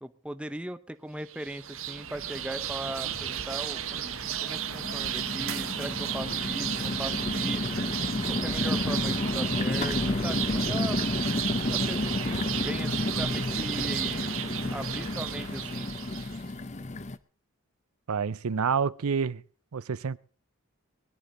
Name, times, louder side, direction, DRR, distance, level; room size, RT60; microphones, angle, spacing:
voice 1, 0.0-4.1 4.4-7.9 8.3-11.0 11.7-14.4 14.7-15.9, right 1 dB, 5° right, 0.7 m, -39 dB
sound 1, 1.3-16.4, right 10 dB, 70° right, 1.2 m, -34 dB
sound 2, 2.2-2.3 2.7-3.3 4.0-17.2, left 2 dB, 30° left, 0.6 m, -31 dB
voice 2, 18.1-19.4 19.7-20.2, right 6 dB, 90° right, 0.6 m, -28 dB
20.5 x 11.0 x 3.9 m
head